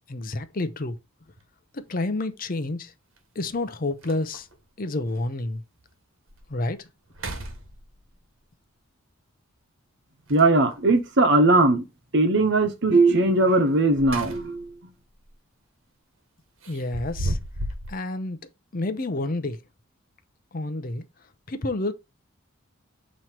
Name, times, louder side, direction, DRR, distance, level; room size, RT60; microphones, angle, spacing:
voice 1, 0.1-1.0 1.7-2.9 3.4-4.5 4.8-5.6 6.5-6.9 16.7-17.4 17.9-18.4 18.7-19.6 20.5-21.0 21.5-21.9, left 2 dB, 45° left, 0.7 m, -29 dB
sound 1, 1.3-1.4 3.2-3.3 3.7-3.8 4.0-4.6 5.1-5.2 5.8-5.9 6.3-6.6 7.1-8.2 10.3-10.9 13.7-14.7 15.1-15.3 16.6-17.9, right 1 dB, 85° right, 1.3 m, -34 dB
voice 2, 10.3-11.8 12.1-14.9, right 2 dB, 60° right, 1.1 m, -19 dB
7.4 x 3.1 x 4.4 m
head